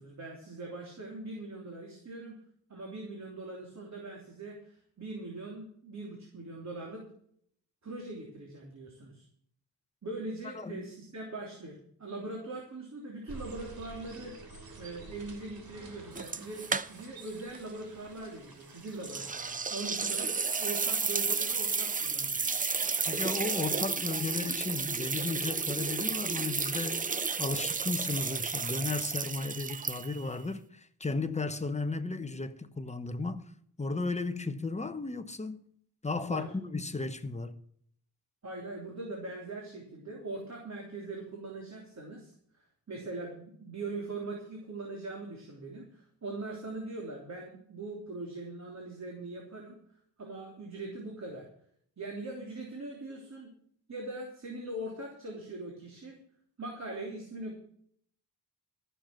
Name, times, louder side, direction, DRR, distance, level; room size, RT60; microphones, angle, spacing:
voice 1, 0.0-2.4 2.7-7.0 7.8-9.2 10.0-14.4 14.8-20.3 20.6-22.6 36.3-36.5 38.4-42.3 42.9-49.8 50.2-51.5 52.0-53.5 53.9-56.2 56.6-57.6, right 2 dB, 40° right, 3.4 m, -41 dB
voice 2, 10.6-10.9 23.1-33.4 33.8-35.7 36.0-37.6, left 3 dB, 15° left, 0.9 m, -35 dB
sound 1, 13.3-20.4, right 3 dB, 60° right, 3.1 m, -49 dB
sound 2, 16.2-17.3 17.5-17.6 19.0-30.3, right 5 dB, 20° right, 0.5 m, -32 dB
14.0 x 6.9 x 7.6 m
cardioid pair, 100°, 40 cm